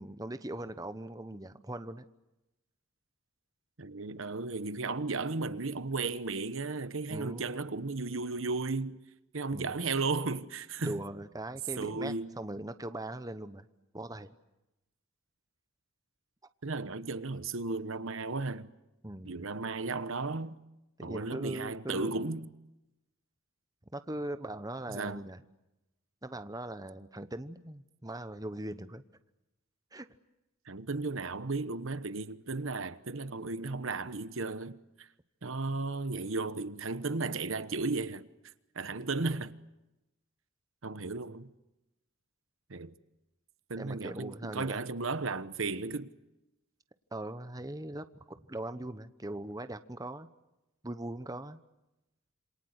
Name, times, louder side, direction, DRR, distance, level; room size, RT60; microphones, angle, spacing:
voice 1, 0.0-2.0 7.0-7.5 9.5-9.8 10.8-13.7 13.9-14.3 19.0-19.5 21.0-22.4 23.9-25.4 26.2-29.0 29.9-30.1 43.8-44.8 47.1-50.3 50.8-51.6, right 1 dB, 15° right, 1.0 m, -40 dB
voice 2, 3.8-9.0 9.3-11.0 11.8-12.3 16.6-18.7 19.2-20.6 21.0-22.5 24.9-25.2 30.7-35.1 35.4-38.3 38.7-39.5 40.8-41.5 42.7-42.9 43.7-46.1, right 3 dB, 65° right, 1.1 m, -35 dB
27.5 x 26.5 x 8.1 m
head